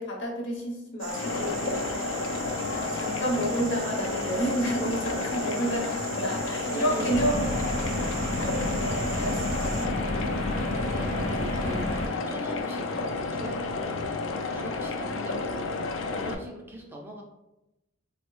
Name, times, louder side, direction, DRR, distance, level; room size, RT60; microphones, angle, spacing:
voice 1, 0.0-1.9 2.6-7.5 8.1-10.1, right 1 dB, 65° left, 0 dB, 0.8 m, -30 dB
sound 1, 1.0-9.9, right 7 dB, 85° right, 0.5 m, -40 dB
sound 2, 1.1-16.3, left 3 dB, 85° left, 0.3 m, -31 dB
voice 2, 6.7-7.4 10.4-17.2, right 1 dB, 10° right, -1 dB, 0.3 m, -41 dB
sound 3, 7.1-12.1, left 1 dB, 35° left, 0.6 m, -31 dB
3.9 x 2.0 x 3.0 m, 0.94 s
head